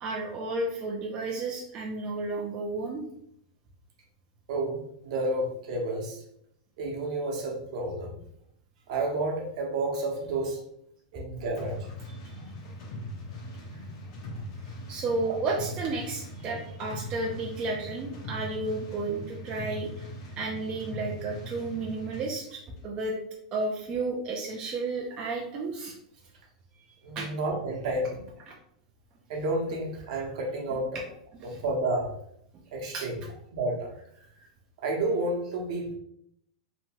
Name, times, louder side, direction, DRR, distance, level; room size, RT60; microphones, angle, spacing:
voice 1, 0.0-3.0 14.9-20.1 20.4-23.1 23.5-26.0 27.2-27.3 30.1-30.2 30.7-30.8 31.4-31.6 32.9-33.1 34.4-34.5, right 3 dB, 25° right, -1 dB, 0.4 m, -32 dB
voice 2, 4.5-6.2 6.8-8.2 8.9-10.6 11.1-11.7 15.2-15.4 27.0-28.2 29.3-30.9 31.4-32.1 32.7-33.1 33.5-33.9 34.8-35.9, right 2 dB, 60° right, 0 dB, 0.8 m, -30 dB
sound 1, 11.6-22.3, left 1 dB, 60° left, 0.8 m, -40 dB
2.8 x 2.2 x 2.8 m, 0.71 s
supercardioid pair, 150°, 4 cm